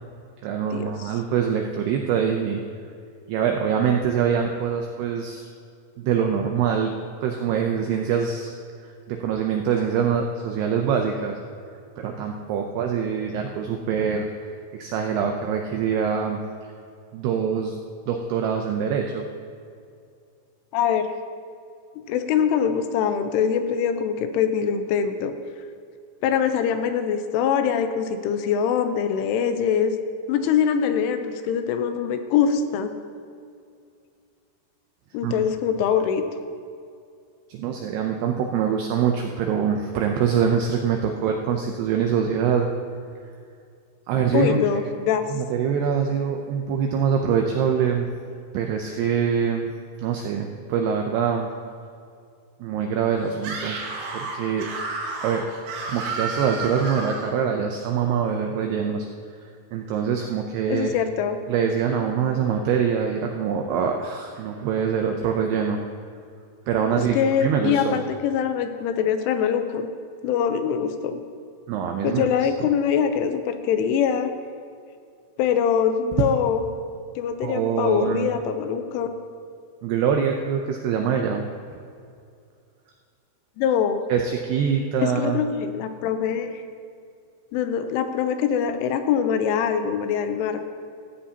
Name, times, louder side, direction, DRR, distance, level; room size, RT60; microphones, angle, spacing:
voice 1, 0.4-2.6 3.3-5.5 6.0-6.9 7.2-8.5 9.1-11.4 12.0-14.3 14.7-16.4 17.1-17.8 18.1-19.3 35.2-35.4 37.5-42.7 44.1-44.6 45.3-48.1 48.5-49.7 50.0-51.5 52.6-53.8 54.1-54.7 55.2-55.4 55.9-59.1 59.7-60.9 61.5-65.8 66.7-68.0 71.7-72.3 77.4-78.3 79.8-81.5 84.1-85.4, right 7 dB, 85° right, 3 dB, 2.3 m, -24 dB
voice 2, 20.7-21.1 22.0-25.3 26.2-29.9 30.3-32.9 35.1-36.2 44.3-45.2 60.7-61.4 66.9-69.9 70.2-71.2 72.0-74.3 75.4-76.6 77.2-79.1 83.6-84.0 85.0-86.6 87.5-90.6, left 8 dB, 85° left, 8 dB, 3.2 m, -23 dB
Screaming, 53.4-57.3, right 3 dB, 70° right, 3.6 m, -31 dB
15.5 x 15.0 x 2.9 m, 2.4 s
omnidirectional pair, 5.6 m